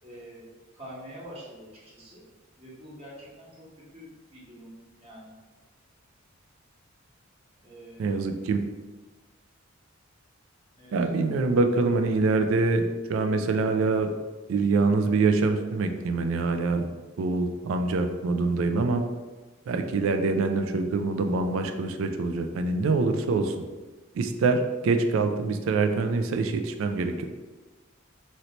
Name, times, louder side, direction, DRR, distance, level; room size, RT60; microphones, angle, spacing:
voice 1, 0.0-2.2 2.6-5.3 7.6-8.1 10.8-11.1, equal, 30° right, -7 dB, 1.0 m, -46 dB
voice 2, 8.0-8.6 10.9-14.1 14.5-16.8 17.2-19.0 19.7-23.5 24.1-27.3, right 3 dB, 75° right, 7 dB, 0.3 m, -25 dB
3.1 x 2.7 x 2.9 m, 1.2 s
head